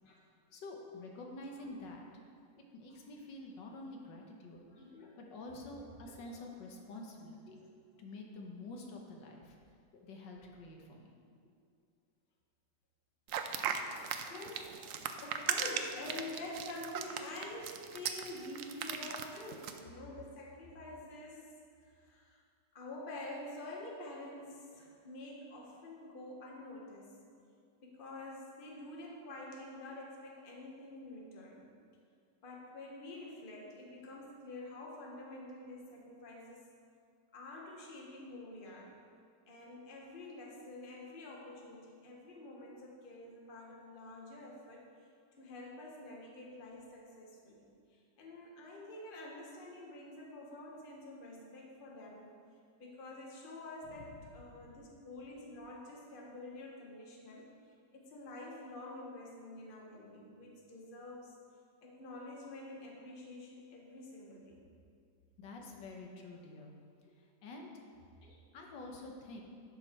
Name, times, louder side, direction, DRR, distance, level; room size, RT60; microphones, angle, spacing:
voice 1, 0.5-2.1 2.7-4.6 5.2-7.6 8.0-9.6 10.0-11.2 54.0-54.2 54.5-54.7 65.4-66.7 67.2-67.7 68.5-69.4, left 2 dB, 85° left, 1 dB, 1.7 m, -48 dB
voice 2, 4.7-5.1 6.2-6.4 6.7-6.8 7.5-7.7 8.4-8.5 14.3-21.5 21.9-22.4 22.7-27.2 27.8-31.7 32.4-36.7 37.3-38.9 39.5-44.8 45.4-52.3 52.8-57.5 57.9-61.3 61.8-64.6 68.2-68.4, left 2 dB, 35° left, -1 dB, 1.2 m, -48 dB
sound 1, 13.3-19.8, right 7 dB, 75° right, 0.7 m, -38 dB
11.5 x 5.5 x 4.4 m, 2.3 s
omnidirectional pair, 1.9 m